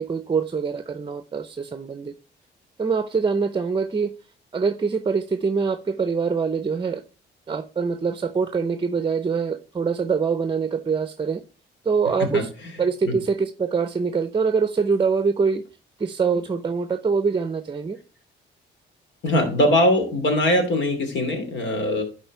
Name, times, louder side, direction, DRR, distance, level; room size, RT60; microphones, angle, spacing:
voice 1, 0.0-2.1 2.8-4.1 4.5-7.0 7.5-11.4 11.8-12.5 12.8-15.6 16.0-18.0, right 5 dB, 25° right, 0.7 m, -24 dB
voice 2, 19.2-22.0, left 1 dB, 65° left, 2.9 m, -21 dB
11.5 x 4.4 x 4.6 m
cardioid pair, 90°, 20 cm